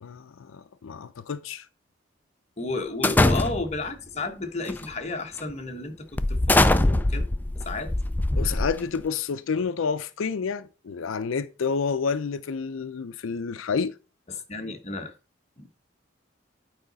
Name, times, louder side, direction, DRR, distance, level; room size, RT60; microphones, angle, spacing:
voice 1, 0.0-1.7 8.4-13.9, left 5 dB, 85° left, 0.4 m, -29 dB
voice 2, 2.6-7.3 7.6-7.9 14.3-15.2 15.6-15.7, left 3 dB, 35° left, 1.1 m, -33 dB
sound 1, 3.0-3.9 4.7-4.9 5.4-5.5 6.2-9.1, left 2 dB, 10° left, 0.3 m, -22 dB
8.9 x 5.0 x 4.0 m
head